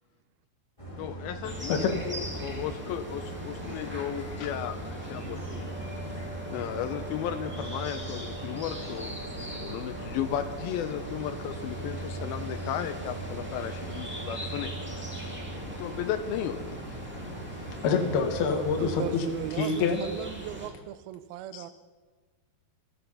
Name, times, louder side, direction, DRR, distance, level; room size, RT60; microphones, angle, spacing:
sound 1, 0.8-18.9, right 1 dB, 10° left, 3.2 m, -40 dB
voice 1, 1.0-5.8 6.1-6.2 6.5-9.1 9.4-15.3 15.8-17.0, left 10 dB, 90° left, 8 dB, 2.2 m, -35 dB
sound 2, 1.4-20.7, right 1 dB, 15° right, 0.3 m, -41 dB
sound 3, 5.5-16.1, right 3 dB, 25° left, 2.4 m, -47 dB
voice 2, 17.8-19.2 19.6-20.0 21.5-21.6, left 5 dB, 65° left, 3 dB, 3.3 m, -26 dB
voice 3, 18.8-21.7, right 12 dB, 85° right, 12 dB, 2.2 m, -37 dB
16.0 x 14.0 x 5.6 m, 1.4 s
omnidirectional pair, 5.1 m